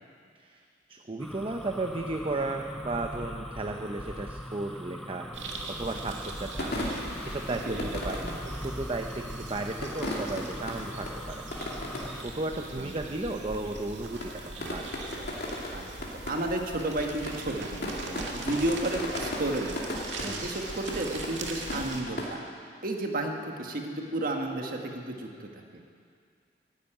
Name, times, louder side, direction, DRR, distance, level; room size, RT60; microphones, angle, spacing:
voice 1, 0.9-6.7 7.3-11.4 12.1-14.9 20.2-20.5, right 2 dB, 30° right, 3 dB, 0.7 m, -34 dB
sound 1, 1.2-12.3, equal, ahead, 0.5 m, -41 dB
sound 2, 5.3-22.0, right 2 dB, 90° right, 2.0 m, -41 dB
sound 3, 6.5-9.0 9.7-12.3 12.5-12.6 12.8-13.3 13.5-13.9 14.2-22.3, left 1 dB, 60° left, 2.8 m, -37 dB
voice 2, 12.6-12.9 15.7-15.9 16.3-19.7 20.2-22.4 22.8-25.8, right 1 dB, 55° right, 2 dB, 1.6 m, -32 dB
14.0 x 11.0 x 8.9 m, 2.3 s
head